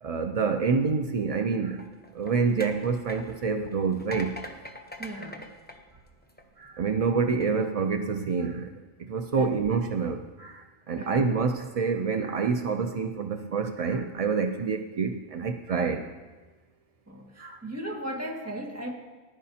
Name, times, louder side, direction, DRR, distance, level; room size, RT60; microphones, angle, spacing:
voice 1, 0.0-1.9 2.1-4.4 6.6-8.7 9.0-16.0 17.4-17.6, right 5 dB, 65° right, 6 dB, 0.3 m, -27 dB
sound 1, 1.7-6.7 7.2-7.5, left 1 dB, 10° left, 0.6 m, -43 dB
voice 2, 5.0-5.5 9.3-9.5 10.9-11.3 17.1-18.9, right 1 dB, 10° right, -1 dB, 1.8 m, -37 dB
19.0 x 11.0 x 2.8 m, 1.3 s
omnidirectional pair, 1.4 m